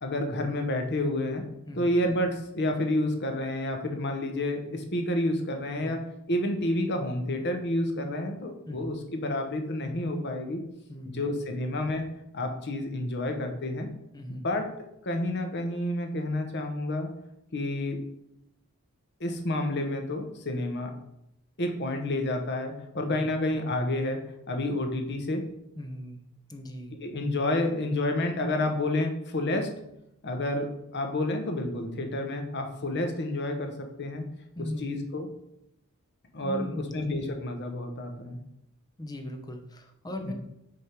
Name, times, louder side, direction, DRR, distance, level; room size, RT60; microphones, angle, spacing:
voice 1, 0.0-1.4 1.7-6.0 6.3-10.6 11.1-12.0 12.3-13.9 14.3-14.6 15.0-17.1 17.5-18.0 19.2-20.9 21.6-24.2 24.5-25.4 27.0-29.7 30.2-34.2 34.6-35.3 36.3-38.4 40.3-40.4, left 1 dB, 50° left, 5 dB, 0.9 m, -29 dB
voice 2, 14.1-14.5 25.8-26.2 26.5-26.9 34.5-34.9 36.4-37.0 39.0-40.3, left 1 dB, 20° left, 4 dB, 0.7 m, -38 dB
6.6 x 3.6 x 4.4 m, 0.82 s
head